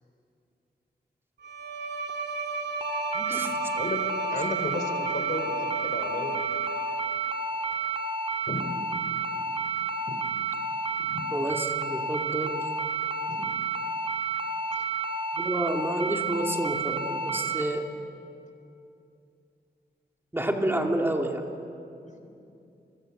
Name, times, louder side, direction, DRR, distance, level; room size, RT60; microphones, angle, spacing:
Bowed string instrument, 1.4-7.2, right 4 dB, 75° right, 3.0 m, -34 dB
sound 1, 2.8-17.6, right 3 dB, 35° right, 2.2 m, -31 dB
voice 1, 3.1-3.6 11.3-12.7 15.3-17.9 20.3-21.4, right 1 dB, 15° right, 2 dB, 2.5 m, -29 dB
voice 2, 3.8-6.3 8.5-9.0 9.3-9.4 10.1-10.2 11.0-11.2 13.3-13.6 14.7-14.8, left 2 dB, 45° left, 5 dB, 3.4 m, -35 dB
28.5 x 23.0 x 8.0 m, 2.6 s
wide cardioid pair, 130°, 18 cm